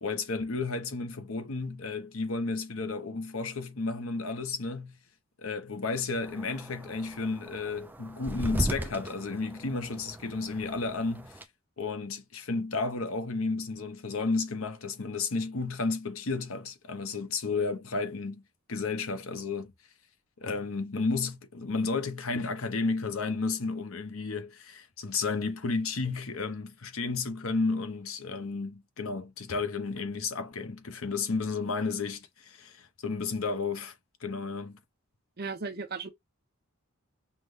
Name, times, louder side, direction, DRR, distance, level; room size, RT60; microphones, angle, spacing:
voice 1, 0.0-5.0 5.4-11.4 11.8-18.4 18.7-19.7 20.4-33.9 34.2-34.8, left 4 dB, 65° left, 0.9 m, -32 dB
sound 1, 6.2-11.4, right 1 dB, 10° right, 0.4 m, -37 dB
voice 2, 35.4-36.1, right 4 dB, 45° right, 0.7 m, -35 dB
5.8 x 2.3 x 3.2 m
head